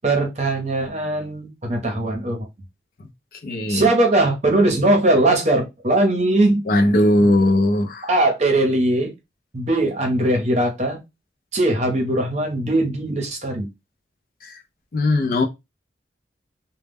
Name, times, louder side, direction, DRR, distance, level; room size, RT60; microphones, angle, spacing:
voice 1, 0.0-2.5 3.7-6.6 8.1-9.1 9.5-11.0 11.5-13.7, right 2 dB, 40° right, 0.7 m, -20 dB
voice 2, 3.4-3.8 6.7-8.1 14.9-15.4, left 1 dB, 50° left, 0.4 m, -18 dB
2.1 x 2.0 x 3.4 m
head